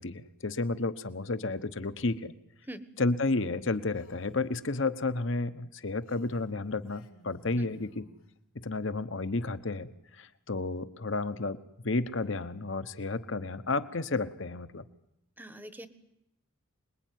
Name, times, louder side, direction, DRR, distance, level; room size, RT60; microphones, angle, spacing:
voice 1, 0.0-2.3 3.0-8.0 8.6-9.9 10.2-11.6 11.8-14.8, left 3 dB, 60° left, 12 dB, 1.1 m, -31 dB
Female speech woman speaking, 3.9-4.5 6.0-8.3, left 2 dB, 90° left, 3.1 m, -60 dB
voice 2, 15.4-15.9, right 1 dB, 10° right, 11 dB, 1.2 m, -43 dB
26.0 x 21.0 x 9.3 m, 0.85 s
head